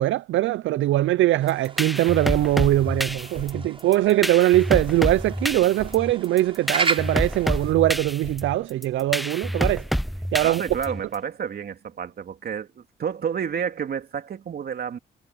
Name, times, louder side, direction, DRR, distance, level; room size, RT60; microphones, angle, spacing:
voice 1, 0.0-9.9 10.3-10.6, right 15 dB, 75° right, 0.5 m, -21 dB
sound 1, 1.4-7.7, right 4 dB, 25° right, 5.9 m, -34 dB
sound 2, 1.5-11.1, equal, ahead, 0.6 m, -28 dB
voice 2, 10.4-15.0, right 7 dB, 50° right, 2.4 m, -30 dB
cardioid pair, 90°, 20 cm